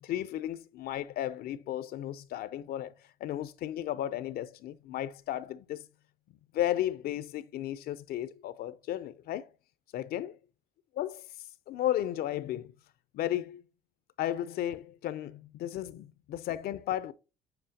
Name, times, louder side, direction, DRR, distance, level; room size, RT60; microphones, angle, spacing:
voice 1, 0.0-2.9 3.2-5.8 6.5-9.5 9.9-10.4 11.0-11.3 11.7-12.7 13.1-13.6 14.2-17.1, left 12 dB, 65° left, 0.5 m, -34 dB
7.8 x 4.4 x 2.7 m
cardioid pair, 110°, 17 cm